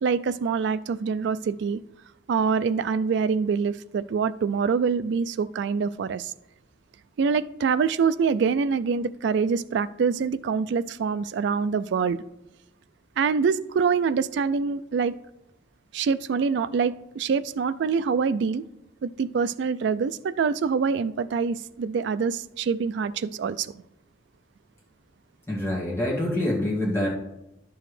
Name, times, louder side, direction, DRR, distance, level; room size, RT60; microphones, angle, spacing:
voice 1, 0.0-1.8 2.3-6.3 7.2-12.2 13.2-15.1 15.9-18.6 19.0-23.7, right 5 dB, 65° right, 0.3 m, -25 dB
voice 2, 25.5-27.1, left 1 dB, 15° left, 1.9 m, -26 dB
10.5 x 7.0 x 3.2 m
head